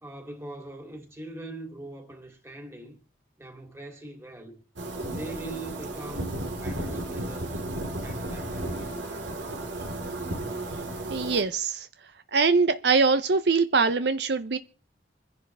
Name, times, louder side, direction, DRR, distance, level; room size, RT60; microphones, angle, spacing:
voice 1, 0.0-3.0 3.4-4.6 5.1-7.6 8.0-9.9, right 2 dB, 15° right, 2.9 m, -42 dB
sound 1, 4.8-11.4, right 1 dB, 90° right, 3.9 m, -34 dB
voice 2, 11.1-11.9 12.3-14.6, right 4 dB, 65° right, 0.7 m, -23 dB
26.5 x 10.5 x 3.4 m
head